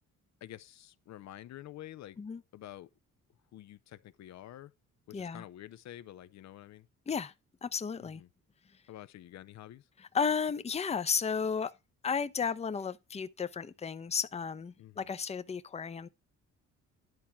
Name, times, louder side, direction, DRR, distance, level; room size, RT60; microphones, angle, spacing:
voice 1, 0.4-2.2 2.5-2.9 3.5-4.7 5.1-6.9 8.0-8.3 8.9-9.9 14.8-15.1, left 13 dB, 65° left, 0.5 m, -48 dB
voice 2, 5.1-5.4 7.1-7.3 7.6-8.2 10.1-11.7 12.0-16.1, left 6 dB, 20° left, 0.6 m, -33 dB
10.5 x 4.4 x 5.8 m
cardioid pair, 90°, 30 cm